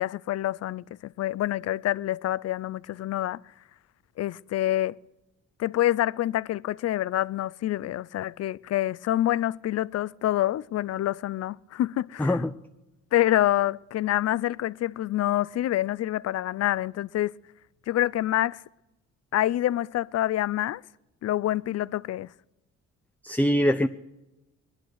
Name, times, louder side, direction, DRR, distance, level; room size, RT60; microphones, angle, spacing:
voice 1, 0.0-3.4 4.2-5.0 5.6-12.4 13.1-17.3 17.9-18.6 19.3-20.8 21.2-22.3, left 13 dB, 55° left, 0.5 m, -27 dB
voice 2, 12.2-12.5 23.2-23.9, equal, 5° left, 0.5 m, -23 dB
20.0 x 11.0 x 6.4 m
cardioid pair, 90°, 30 cm